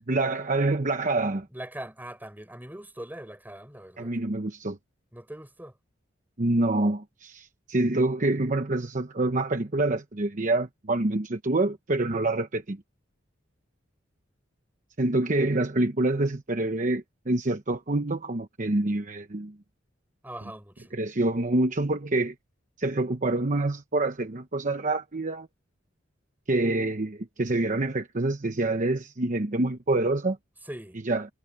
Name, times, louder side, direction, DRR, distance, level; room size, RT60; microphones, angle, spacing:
voice 1, 0.1-1.5 4.0-4.8 6.4-12.8 15.0-19.5 20.9-22.3 22.8-25.5 26.5-30.4 31.1-31.3, right 2 dB, 45° right, 1.0 m, -26 dB
voice 2, 1.5-4.1 5.1-5.7 20.2-20.9 30.7-31.0, right 1 dB, 10° right, 5.6 m, -41 dB
head